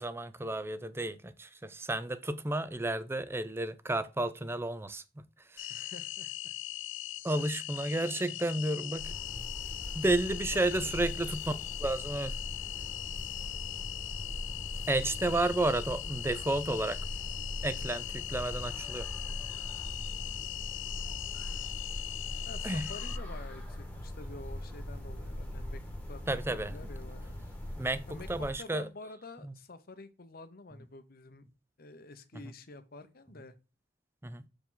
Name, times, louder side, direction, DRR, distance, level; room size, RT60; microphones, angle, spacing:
voice 1, 0.0-5.2 5.5-5.7 7.2-9.2 9.9-12.4 14.9-17.0 17.6-19.1 22.6-22.9 26.3-26.9 27.8-28.9 29.4-29.5 34.2-34.4, right 2 dB, 15° right, 0.5 m, -32 dB
sound 1, 5.6-23.2, left 15 dB, 70° left, 0.4 m, -40 dB
voice 2, 5.7-6.5 7.3-7.4 8.0-8.3 10.5-10.9 19.2-19.6 22.4-25.8 26.1-26.2 26.7-27.3 28.1-31.5 31.8-33.5, left 2 dB, 50° left, 0.9 m, -49 dB
sound 2, 9.0-28.5, left 1 dB, 10° left, 1.4 m, -41 dB
6.8 x 4.9 x 3.9 m
head